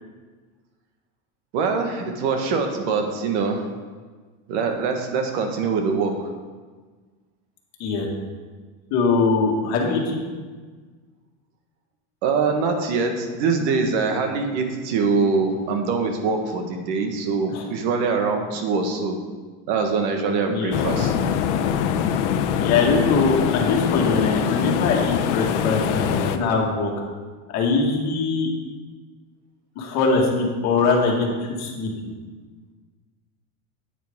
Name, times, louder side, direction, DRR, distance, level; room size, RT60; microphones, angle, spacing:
voice 1, 1.5-3.6 4.5-6.3 12.2-19.2 19.7-21.1, right 4 dB, 65° right, 4 dB, 1.5 m, -23 dB
voice 2, 8.9-10.2 17.5-17.6 20.5-20.8 22.6-26.9 27.5-28.5 29.8-31.9, left 4 dB, 50° left, -1 dB, 2.0 m, -22 dB
sound 1, 20.7-26.4, left 8 dB, 80° left, 0.8 m, -23 dB
9.2 x 9.1 x 3.7 m, 1.4 s
supercardioid pair, 155°, 35 cm